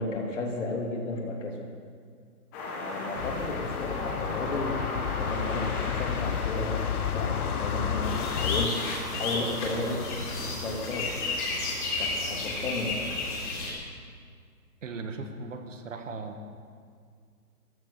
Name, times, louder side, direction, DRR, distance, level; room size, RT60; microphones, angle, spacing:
voice 1, 0.0-1.7 2.7-8.8 9.1-10.1 10.5-11.2 12.0-13.0, left 2 dB, 55° left, 1 dB, 2.8 m, -33 dB
sound 1, 2.5-13.6, left 2 dB, 10° left, 1.1 m, -37 dB
sound 2, 3.1-8.7, left 10 dB, 75° left, 0.7 m, -32 dB
sound 3, 8.0-13.7, left 3 dB, 30° left, 3.3 m, -32 dB
voice 2, 14.8-16.4, right 3 dB, 55° right, 6 dB, 1.7 m, -38 dB
14.0 x 12.5 x 6.9 m, 2.1 s
hypercardioid pair, 175°, 45 cm